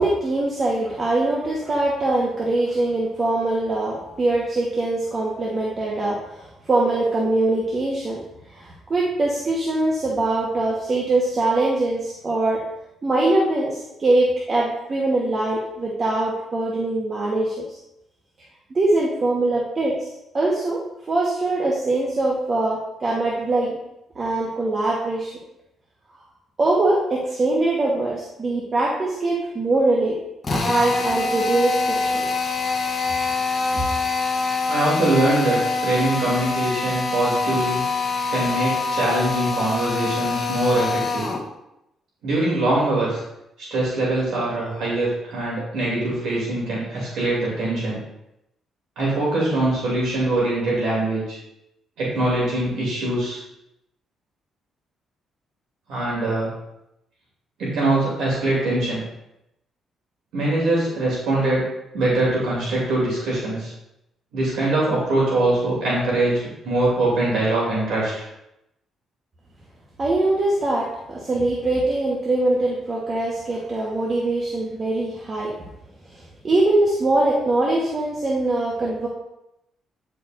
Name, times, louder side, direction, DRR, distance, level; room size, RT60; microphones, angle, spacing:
voice 1, 0.0-8.2 8.5-12.6 13.0-17.8 18.7-20.1 20.3-20.8 21.1-23.8 24.1-25.3 26.6-30.2 30.5-32.2 70.0-75.5 76.4-79.1, right 2 dB, 35° right, -4 dB, 1.2 m, -22 dB
Drill, 30.4-41.5, left 4 dB, 30° left, 1.0 m, -24 dB
voice 2, 34.7-37.8 38.3-41.3 42.2-43.2 43.7-48.0 49.0-51.4 52.0-53.4 55.9-56.5 57.6-59.0 60.3-61.6 61.9-63.7 64.3-68.3, right 2 dB, 75° right, -5 dB, 2.6 m, -22 dB
9.6 x 4.6 x 2.6 m, 0.86 s
cardioid pair, 90°, 0 cm